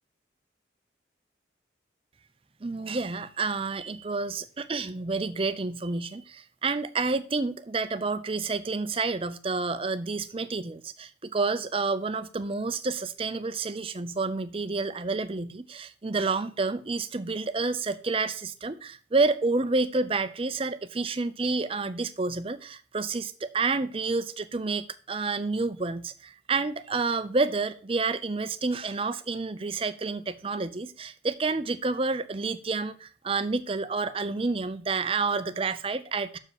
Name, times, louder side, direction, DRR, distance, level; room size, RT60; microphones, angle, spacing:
voice 1, 2.6-36.4, right 3 dB, 30° right, 12 dB, 0.5 m, -29 dB
6.7 x 5.0 x 6.5 m, 0.39 s
head